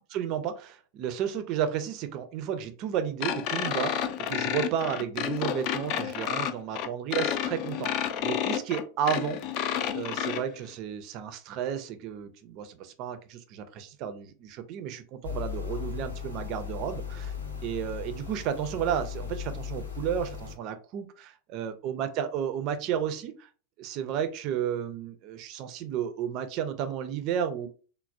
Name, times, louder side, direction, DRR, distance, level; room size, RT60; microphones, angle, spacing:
voice 1, 0.1-17.3 17.6-23.5 23.8-27.7, right 9 dB, 40° right, 9 dB, 0.4 m, -32 dB
sound 1, 3.2-10.4, left 9 dB, 40° left, 0.3 m, -30 dB
sound 2, 15.2-20.6, left 7 dB, 75° left, 0.6 m, -37 dB
3.2 x 2.0 x 2.5 m, 0.37 s
figure-of-eight pair, 90°, 0 cm